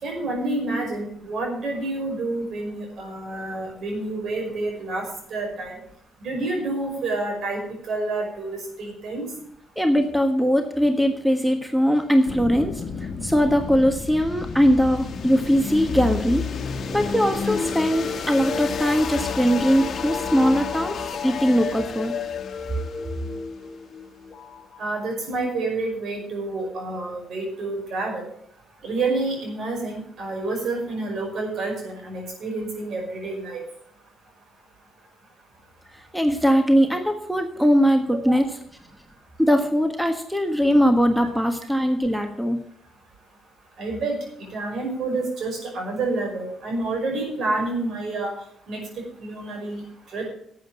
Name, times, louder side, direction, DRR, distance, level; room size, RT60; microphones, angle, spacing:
voice 1, 0.0-5.8 6.2-9.2 24.8-28.3 28.8-33.6 38.3-38.4 43.8-48.3 48.7-48.8 49.2-50.3, right 2 dB, 65° right, 1 dB, 5.5 m, -28 dB
voice 2, 9.8-16.4 16.9-21.0 21.2-22.1 35.9-38.5 39.4-42.6, equal, 5° right, 6 dB, 1.4 m, -21 dB
sound 1, 12.3-25.1, left 5 dB, 55° left, 1.4 m, -31 dB
11.5 x 8.2 x 7.5 m, 0.69 s
cardioid pair, 90°, 0 cm